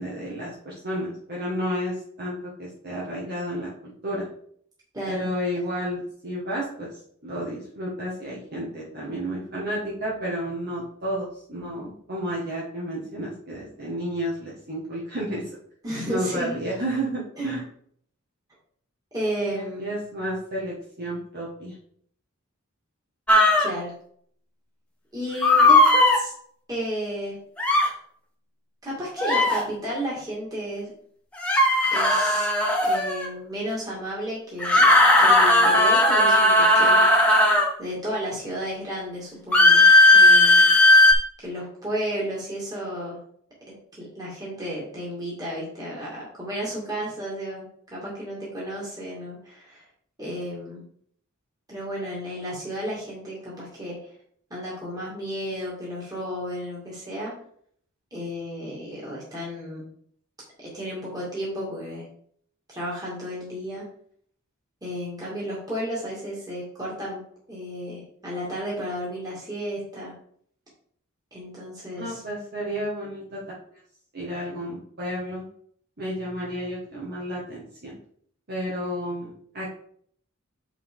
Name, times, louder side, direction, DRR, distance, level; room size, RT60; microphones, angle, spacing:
voice 1, 0.0-4.3 5.1-6.9 7.2-15.4 16.1-17.6 19.4-21.7 72.0-73.4 74.1-75.5 76.0-78.0 78.5-79.7, equal, 50° right, -5 dB, 1.6 m, -31 dB
voice 2, 4.9-5.3 15.8-16.6 17.4-17.5 19.1-19.9 23.6-23.9 25.1-26.3 26.7-27.4 28.8-30.9 31.9-32.5 32.8-34.9 35.2-37.5 37.8-39.9 40.1-40.6 41.4-43.2 43.9-49.8 50.2-50.8 51.7-54.0 54.5-57.3 58.1-59.9 60.6-62.1 62.7-63.8 64.8-67.2 67.5-70.1 71.3-72.2, equal, 20° right, -6 dB, 2.3 m, -33 dB
sound 1, 23.3-23.7 25.4-26.2 27.6-27.9 29.2-29.6 31.4-33.3 34.6-37.7 39.5-41.1, left 2 dB, 5° left, 1.3 m, -16 dB
7.4 x 5.9 x 3.7 m, 0.63 s
head